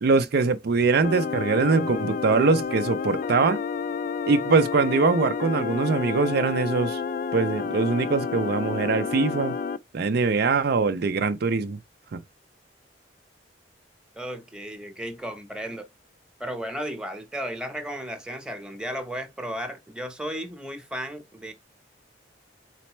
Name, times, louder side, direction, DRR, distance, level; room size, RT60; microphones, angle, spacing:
voice 1, 0.0-3.6 4.3-7.0 7.3-9.6 9.9-11.8 12.1-12.2, right 4 dB, 60° right, 0.4 m, -22 dB
sound 1, 1.0-9.8, left 5 dB, 50° left, 0.4 m, -30 dB
voice 2, 14.1-15.9 16.4-21.5, equal, 5° right, 0.9 m, -34 dB
4.3 x 4.1 x 3.0 m
head